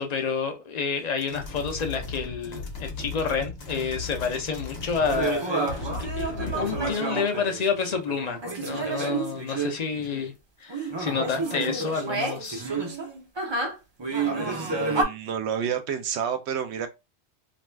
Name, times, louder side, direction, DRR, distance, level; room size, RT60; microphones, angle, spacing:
voice 1, 0.0-5.9 6.1-10.3 10.6-12.6, left 5 dB, 45° left, 0.6 m, -29 dB
sound 1, 1.2-5.4 5.7-7.0, left 3 dB, 65° left, 1.1 m, -36 dB
sound 2, 5.0-10.3 10.7-15.0, right 3 dB, 30° right, 0.5 m, -30 dB
voice 2, 14.3-16.9, right 8 dB, 75° right, 0.8 m, -30 dB
2.5 x 2.3 x 3.3 m
omnidirectional pair, 1.2 m